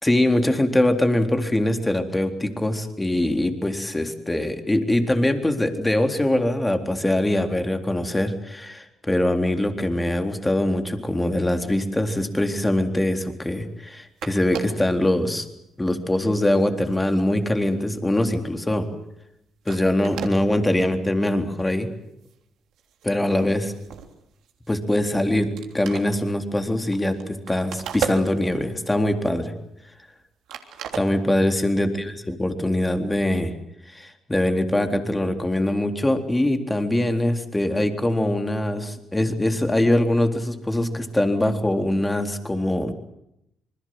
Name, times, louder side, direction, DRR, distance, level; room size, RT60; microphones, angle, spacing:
voice 1, 0.0-15.5 15.8-18.9 19.7-21.9 23.0-23.7 24.7-29.5 30.9-33.5 33.9-42.9, left 1 dB, 15° left, 6 dB, 3.8 m, -23 dB
sound 1, 13.9-14.0 14.2-14.9 15.5-15.7 16.1-18.4 18.8-19.0 19.3-19.4 19.6-20.4 21.0-21.1 21.4-21.7 22.0-22.4 22.7-24.9 25.3-25.4 25.6-28.7 29.2-30.2 30.5-31.6, right 8 dB, 75° right, 3.3 m, -36 dB
27.0 x 21.0 x 7.9 m, 0.80 s
supercardioid pair, 65°, 0 cm